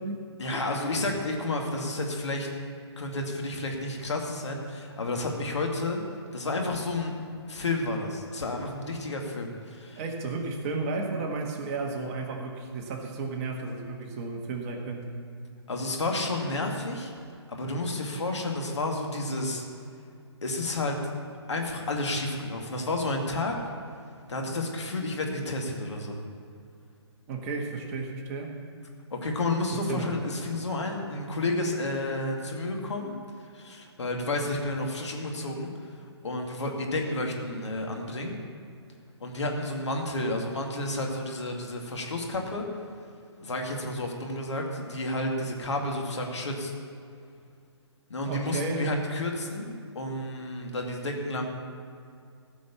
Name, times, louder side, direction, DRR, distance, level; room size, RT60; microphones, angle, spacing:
voice 1, 0.4-2.5 3.0-6.0 6.3-7.1 7.5-10.0 15.7-17.1 17.5-19.6 20.4-21.0 21.5-23.6 24.3-26.2 29.1-33.1 33.5-35.9 36.2-38.4 39.2-42.7 43.4-46.7 48.1-51.5, left 2 dB, 75° left, 1 dB, 2.3 m, -31 dB
voice 2, 10.0-15.2 27.3-28.5 29.7-30.1 48.2-49.0, right 3 dB, 30° right, 1 dB, 1.6 m, -33 dB
15.0 x 6.3 x 7.1 m, 2.4 s
figure-of-eight pair, 135°, 15 cm